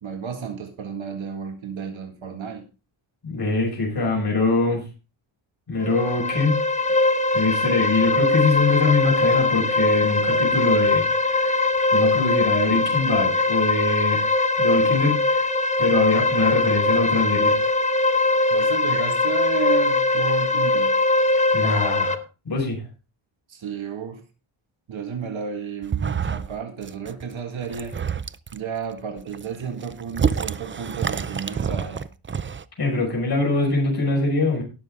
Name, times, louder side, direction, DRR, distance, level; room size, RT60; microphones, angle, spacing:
voice 1, 0.0-2.7 18.5-20.9 23.5-24.2 24.9-28.0 28.5-32.1, right 6 dB, 65° right, 1.9 m, -32 dB
voice 2, 3.2-4.8 5.7-6.6 7.3-11.6 11.9-14.2 14.6-15.5 15.8-17.7 21.5-22.2 22.4-22.8 32.8-34.6, left 3 dB, 50° left, 6.1 m, -23 dB
sound 1, 5.8-22.2, left 2 dB, 15° left, 0.9 m, -21 dB
sound 2, 25.8-26.6 26.8-27.2 27.6-28.6 29.2-32.6, right 6 dB, 25° right, 0.4 m, -27 dB
18.5 x 6.5 x 3.7 m
wide cardioid pair, 130°, 50 cm